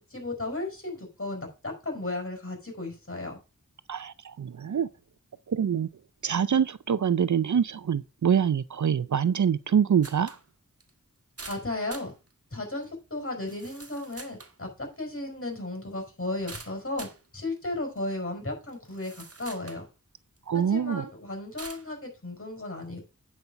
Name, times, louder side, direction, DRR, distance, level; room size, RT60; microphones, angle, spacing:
voice 1, 0.1-3.4 11.5-12.1 12.5-17.1 17.3-19.8 20.5-23.0, left 2 dB, 40° left, 5.2 m, -35 dB
voice 2, 3.9-4.9 5.5-5.9 6.2-10.4 20.5-21.1, right 8 dB, 65° right, 0.5 m, -25 dB
sound 1, 10.0-10.4 10.8-10.9 11.4-12.1 12.8-12.9 13.5-14.5 16.5-17.2 18.0-18.1 18.7-19.8 20.4-20.5 21.6-21.9, right 3 dB, 45° right, 1.5 m, -44 dB
9.3 x 5.5 x 5.5 m
wide cardioid pair, 55°, 32 cm